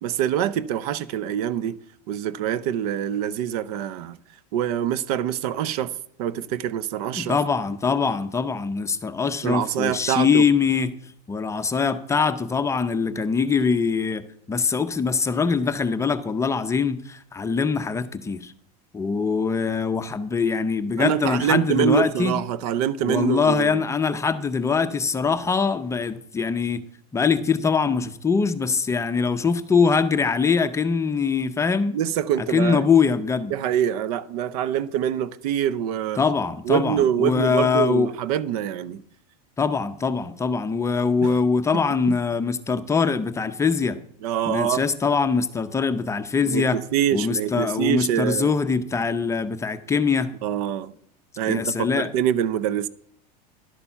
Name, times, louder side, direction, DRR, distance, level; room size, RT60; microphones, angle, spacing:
voice 1, 0.0-1.8 2.1-4.2 4.5-5.9 6.2-7.4 9.4-10.5 21.0-23.8 31.9-32.9 33.5-36.2 36.7-39.0 41.2-41.4 44.2-44.8 46.4-48.5 50.4-50.9 51.4-52.9, right 10 dB, 70° right, 0.7 m, -25 dB
voice 2, 7.1-10.9 11.3-14.2 14.5-18.5 18.9-22.3 23.0-26.8 27.1-32.0 32.4-33.5 36.2-38.1 39.6-44.0 44.5-46.8 47.1-50.3 51.5-52.1, left 5 dB, 15° left, 0.6 m, -23 dB
11.5 x 6.9 x 5.7 m
supercardioid pair, 130°, 20 cm